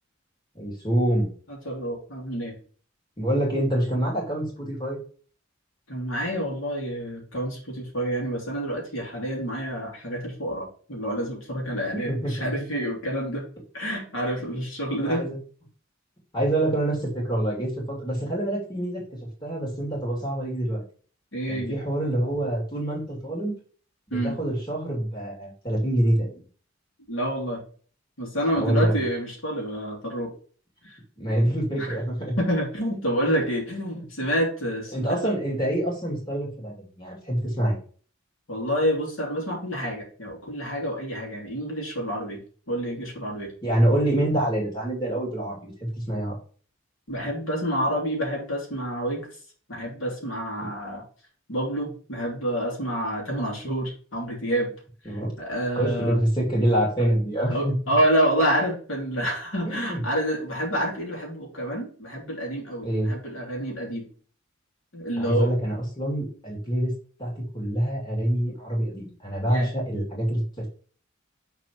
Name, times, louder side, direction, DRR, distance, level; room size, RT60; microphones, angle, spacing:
voice 1, 0.5-1.3 3.2-5.0 11.9-12.5 15.0-15.4 16.3-19.0 19.4-20.8 21.5-23.6 24.1-26.4 28.5-29.0 31.2-32.3 33.9-34.0 34.9-37.8 43.6-45.7 46.1-46.3 55.0-55.3 55.7-58.0 59.7-60.0 62.8-63.1 65.2-66.9 67.2-70.7, right 1 dB, 20° left, -3 dB, 3.0 m, -26 dB
voice 2, 1.5-2.5 5.9-13.4 13.7-15.2 21.3-21.8 24.1-24.4 27.1-27.6 28.2-30.3 30.8-31.0 31.8-32.0 32.4-35.3 38.5-42.4 42.7-43.5 47.1-49.3 49.7-51.0 51.5-54.7 55.4-56.2 57.5-64.1 64.9-65.5 69.5-69.7, equal, 80° left, -1 dB, 2.7 m, -28 dB
6.5 x 4.1 x 4.6 m, 0.41 s
head